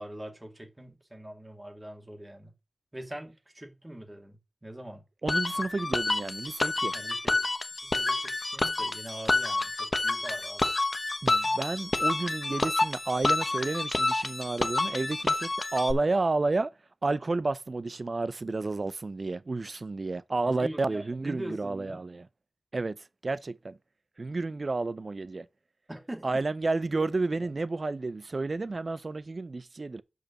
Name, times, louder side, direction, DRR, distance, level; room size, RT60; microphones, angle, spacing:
voice 1, 0.0-2.5 2.9-5.0 6.9-7.5 7.8-10.7 20.4-22.0 25.9-26.4 27.4-27.5, right 1 dB, 20° right, 2.4 m, -42 dB
voice 2, 5.2-6.9 11.2-16.7 17.0-22.3 22.7-23.0 23.2-23.8 24.2-25.5 26.2-30.0, right 3 dB, 55° right, 0.6 m, -31 dB
sound 1, 5.3-15.9, left 2 dB, 40° left, 1.1 m, -29 dB
6.5 x 5.3 x 7.1 m
cardioid pair, 50°, 0 cm